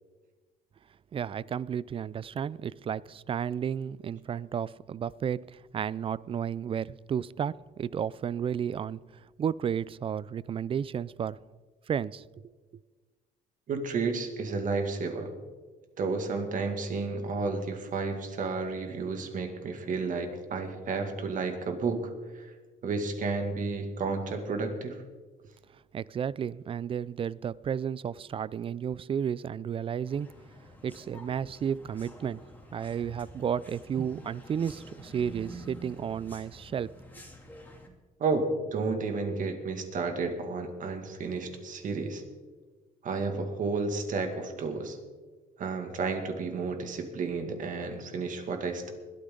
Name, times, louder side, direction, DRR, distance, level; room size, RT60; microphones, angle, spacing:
voice 1, 1.1-9.0 9.4-11.4 11.9-12.5 25.9-30.3 30.8-32.4 32.7-36.9, right 8 dB, 35° right, 0.4 m, -32 dB
voice 2, 13.7-15.3 16.0-22.5 22.8-25.0 38.2-42.2 43.0-45.0 45.6-48.9, right 4 dB, 50° right, 2.2 m, -32 dB
sound 1, 30.1-37.9, right 1 dB, 10° left, 2.7 m, -49 dB
21.0 x 13.0 x 3.9 m
cardioid pair, 110°, 17 cm